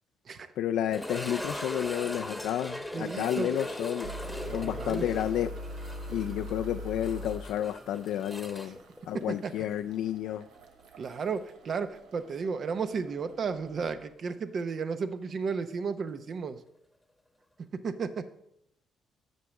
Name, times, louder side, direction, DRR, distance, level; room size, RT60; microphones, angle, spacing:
voice 1, 0.6-4.1 4.5-5.5 6.1-8.8 9.1-10.4, left 11 dB, 85° left, 8 dB, 0.3 m, -31 dB
sound 1, 0.9-9.8 10.1-10.2 10.8-10.9 13.5-13.6, left 1 dB, ahead, 1.2 m, -39 dB
voice 2, 2.9-3.6 4.5-5.1 9.3-9.5 11.0-16.6 17.7-18.3, right 5 dB, 50° right, 11 dB, 0.7 m, -33 dB
sound 2, 4.0-14.1, equal, 85° right, 1.2 m, -43 dB
8.2 x 5.8 x 6.2 m, 0.76 s
cardioid pair, 90°, 0 cm